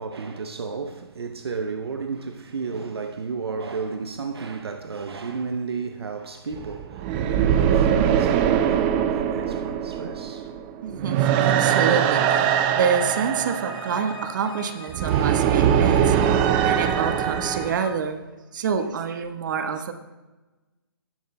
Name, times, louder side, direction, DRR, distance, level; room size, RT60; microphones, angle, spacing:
voice 1, 0.0-11.0, right 5 dB, 75° right, 0.8 m, -33 dB
sound 1, 6.5-17.7, right 9 dB, 25° right, 0.5 m, -22 dB
voice 2, 10.8-18.2 18.5-19.9, right 6 dB, 50° right, 1.2 m, -27 dB
Bowed string instrument, 12.7-17.9, left 5 dB, 50° left, 2.0 m, -44 dB
18.0 x 10.5 x 2.2 m
hypercardioid pair, 140°, 13 cm